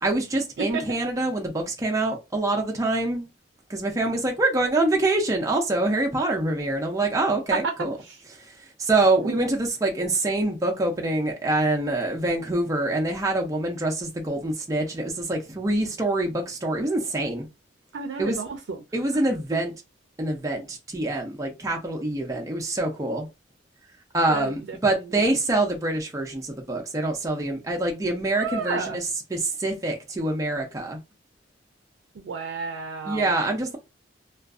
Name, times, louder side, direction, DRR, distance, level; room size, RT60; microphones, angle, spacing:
voice 1, 0.0-3.3 3.7-8.0 8.3-8.4 8.8-17.5 18.2-18.4 18.9-19.7 20.2-23.3 24.1-31.0 33.0-33.8, right 2 dB, 20° right, 0.4 m, -25 dB
voice 2, 17.9-18.8 24.3-24.5 28.4-29.0 32.2-33.3, right 5 dB, 85° right, 0.4 m, -31 dB
2.5 x 2.3 x 2.3 m
head